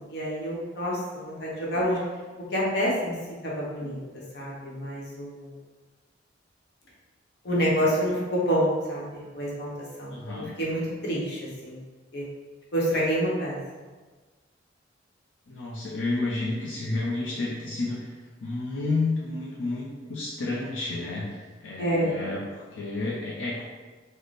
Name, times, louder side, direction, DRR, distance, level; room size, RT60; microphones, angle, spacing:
voice 1, 0.0-2.0 2.5-5.6 7.4-11.8 12.1-12.2 12.7-13.6 21.8-22.1, equal, 60° left, -5 dB, 0.9 m, -28 dB
voice 2, 10.1-10.5 15.5-18.1 18.4-23.6, left 2 dB, 85° left, -5 dB, 0.6 m, -31 dB
3.2 x 2.1 x 4.0 m, 1.3 s
head